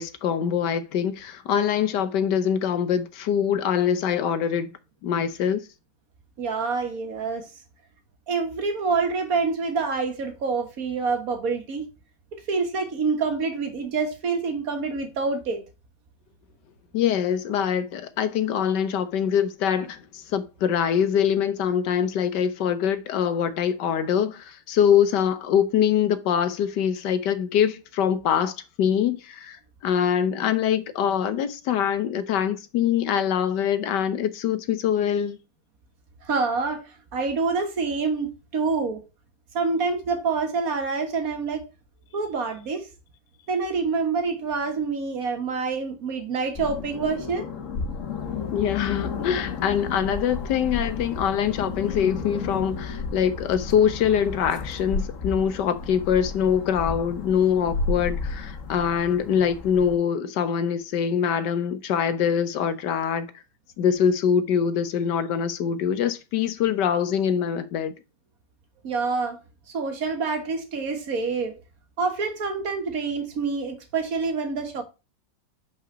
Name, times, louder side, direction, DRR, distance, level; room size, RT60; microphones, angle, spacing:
voice 1, 0.0-4.7 5.0-5.7 16.9-29.6 29.8-35.4 48.5-63.3 63.8-67.9, left 8 dB, 75° left, 1.5 m, -24 dB
voice 2, 6.4-7.5 8.3-11.9 12.5-15.6 36.2-39.0 39.5-41.6 42.1-42.9 43.5-47.5 68.8-69.4 69.7-71.6 72.0-74.8, right 4 dB, 55° right, 1.8 m, -27 dB
sound 1, 46.5-59.9, left 4 dB, 50° left, 1.3 m, -32 dB
5.5 x 5.0 x 6.0 m
omnidirectional pair, 1.9 m